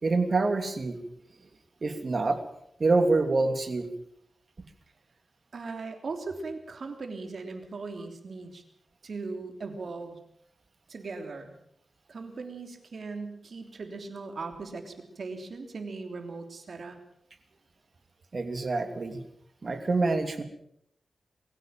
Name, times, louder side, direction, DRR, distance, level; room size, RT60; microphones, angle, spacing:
voice 1, 0.0-1.0 1.8-2.4 2.8-3.9 18.3-19.2 19.6-20.4, right 3 dB, 45° right, 7 dB, 2.9 m, -26 dB
voice 2, 5.5-8.6 9.0-10.2 10.9-11.5 12.1-17.0, right 3 dB, 65° right, 6 dB, 3.3 m, -39 dB
22.5 x 16.0 x 7.6 m, 0.72 s
wide cardioid pair, 90°, 0 cm